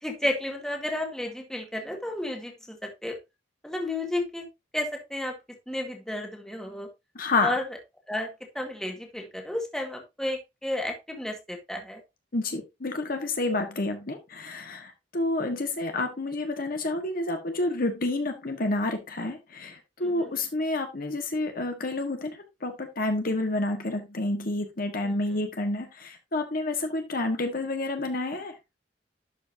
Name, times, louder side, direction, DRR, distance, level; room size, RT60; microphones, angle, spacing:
voice 1, 0.0-3.1 3.6-4.4 4.7-5.3 5.7-6.9 7.4-7.6 8.1-8.3 8.6-12.0 20.0-20.4, left 1 dB, 5° left, 2 dB, 1.7 m, -32 dB
voice 2, 7.1-7.5 12.3-28.5, left 2 dB, 50° left, 5 dB, 1.4 m, -29 dB
11.5 x 5.4 x 2.7 m, 0.23 s
head